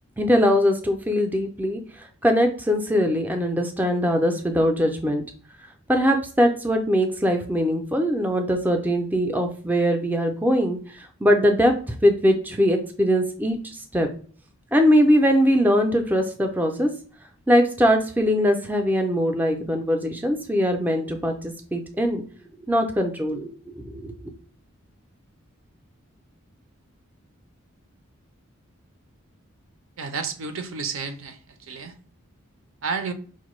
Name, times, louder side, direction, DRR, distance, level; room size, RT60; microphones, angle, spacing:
voice 1, 0.2-1.8 2.2-5.2 5.9-14.1 14.7-16.9 17.5-22.2 22.7-24.3, equal, 10° right, 0.4 m, -21 dB
voice 2, 30.0-31.4 31.7-31.9 32.8-33.1, right 5 dB, 75° right, 0.5 m, -30 dB
5.0 x 2.1 x 3.1 m
head